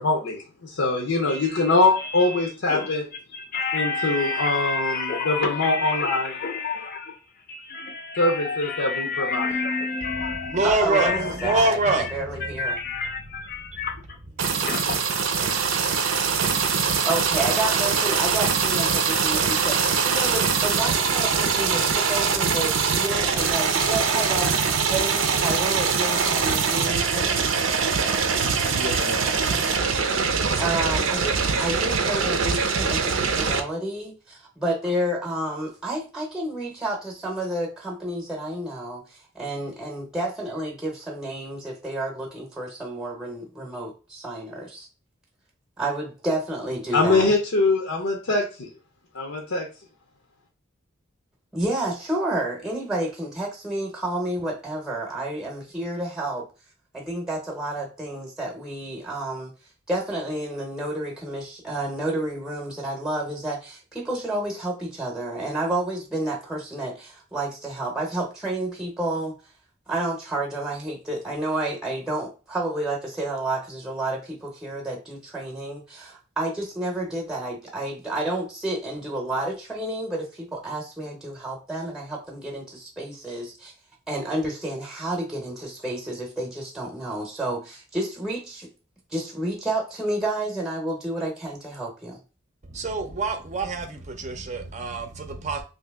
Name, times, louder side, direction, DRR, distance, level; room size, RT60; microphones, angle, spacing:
voice 1, 0.0-3.0 3.7-6.3 8.2-9.5 28.6-29.7 46.9-48.7 49.1-49.7, left 2 dB, 90° left, 0.7 m, -23 dB
voice 2, 1.3-7.2 7.5-11.6 11.9-12.1 12.4-13.9 14.6-15.0, left 4 dB, 45° left, 0.5 m, -30 dB
voice 3, 10.0-12.6 92.7-95.6, right 2 dB, 35° right, 0.5 m, -26 dB
voice 4, 10.6-12.8 17.0-24.5 24.9-27.4 30.6-44.9 45.8-47.3 51.5-56.4 56.9-59.5 59.9-69.3 69.9-83.7 84.1-88.7 89.1-92.2, right 1 dB, 5° right, 0.7 m, -30 dB
sound 1, 14.4-33.6, right 5 dB, 85° right, 0.6 m, -23 dB
2.8 x 2.7 x 3.4 m
head